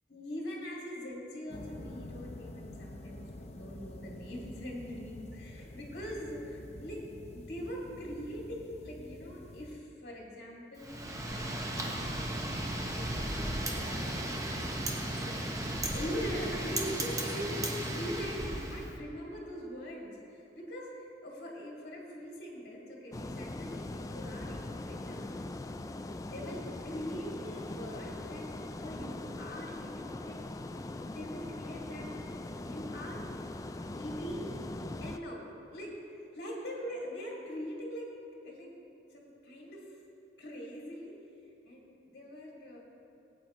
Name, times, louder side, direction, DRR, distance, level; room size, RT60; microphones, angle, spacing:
voice 1, 0.1-7.0 7.3-11.1 11.5-12.2 12.5-14.4 15.2-15.4 15.9-25.4 26.2-28.5 28.8-30.4 31.0-32.1 32.5-33.2 34.0-34.5 35.0-35.4 35.7-36.0 36.3-38.1 38.4-38.7 39.1-39.9 40.4-41.2 41.6-42.8, equal, 60° left, -3 dB, 2.1 m, -42 dB
sound 1, 1.5-9.7, left 1 dB, 40° left, 0.7 m, -47 dB
Wind, 10.8-18.9, right 1 dB, 20° right, 0.9 m, -35 dB
sound 2, 23.1-35.2, left 2 dB, 20° left, 0.3 m, -41 dB
18.0 x 9.0 x 3.0 m, 2.8 s
head